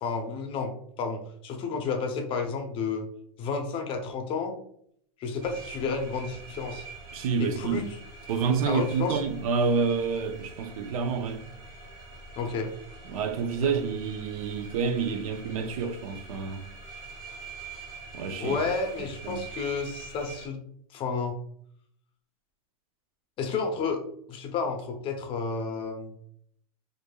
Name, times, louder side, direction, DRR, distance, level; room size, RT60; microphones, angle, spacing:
voice 1, 0.0-3.1 3.4-4.5 5.2-6.9 7.4-8.0 8.7-9.2 12.4-12.7 13.6-13.7 18.4-20.6 20.9-21.4 23.4-24.0 24.3-26.1, left 4 dB, 30° left, 0.6 m, -31 dB
sound 1, 5.4-20.5, right 3 dB, 25° right, 1.0 m, -45 dB
voice 2, 7.1-7.9 8.3-11.4 13.1-16.6 18.1-18.6 19.2-19.4, right 5 dB, 70° right, 0.5 m, -28 dB
4.5 x 2.5 x 2.3 m
supercardioid pair, 150°, 19 cm